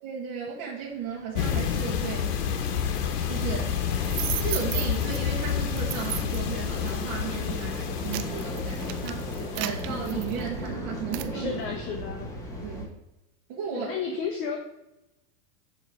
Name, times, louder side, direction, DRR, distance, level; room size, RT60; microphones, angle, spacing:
voice 1, 0.0-2.3 3.2-4.0 4.4-11.6 12.6-12.9 13.5-13.9, right 6 dB, 40° right, -3 dB, 1.1 m, -35 dB
sound 1, 0.9-12.8, equal, 5° left, 1.2 m, -38 dB
sound 2, 1.4-10.4, left 8 dB, 75° left, 1.0 m, -29 dB
sound 3, 4.0-5.2 5.8-6.5 7.2-7.4 7.8-10.7 11.1-11.3, right 14 dB, 85° right, 0.6 m, -34 dB
voice 2, 11.3-12.3 13.7-14.6, left 6 dB, 30° left, 3 dB, 0.4 m, -32 dB
7.6 x 3.0 x 4.6 m, 0.91 s
supercardioid pair, 145°, 46 cm